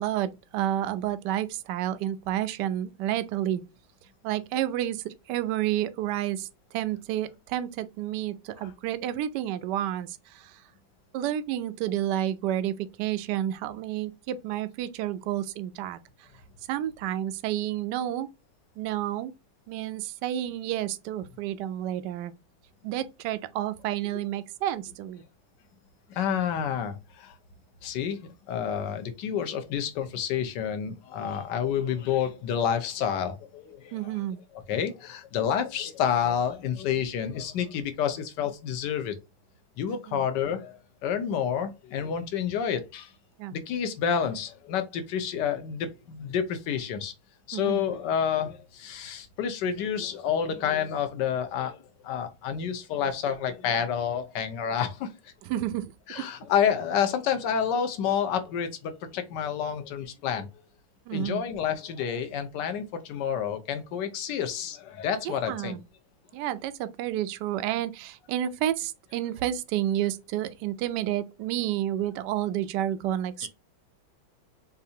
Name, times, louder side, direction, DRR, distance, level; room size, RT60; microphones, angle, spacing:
voice 1, 0.0-3.6 4.2-10.6 11.1-16.3 16.7-18.3 18.8-19.3 19.7-22.3 22.8-25.2 33.9-34.4 39.9-40.2 43.4-43.6 47.5-47.8 55.4-56.3 61.1-61.5 65.2-65.8 66.3-73.5, right 12 dB, 70° right, 1.1 m, -30 dB
voice 2, 26.1-27.3 27.8-34.1 34.7-39.1 39.8-43.1 43.5-47.1 47.5-55.3 56.1-60.5 61.1-65.8 73.4-73.5, left 8 dB, 65° left, 1.4 m, -29 dB
6.7 x 2.7 x 2.8 m
omnidirectional pair, 2.2 m